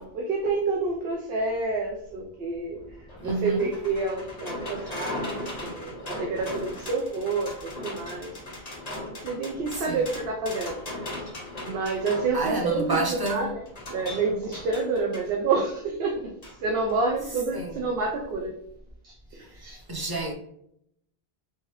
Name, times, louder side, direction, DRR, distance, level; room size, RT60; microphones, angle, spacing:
voice 1, 0.0-2.8 3.2-8.7 9.2-10.8 11.6-16.3 16.6-18.5 19.0-20.0, right 3 dB, 70° right, 0.8 m, -29 dB
sound 1, 2.7-15.3 16.4-16.6 16.9-17.0, left 1 dB, 40° left, 1.2 m, -38 dB
voice 2, 3.2-3.7 9.7-10.0 12.3-13.5 17.5-17.8 19.9-20.3, right 3 dB, 30° right, 0.5 m, -29 dB
3.3 x 3.2 x 3.0 m
omnidirectional pair, 1.1 m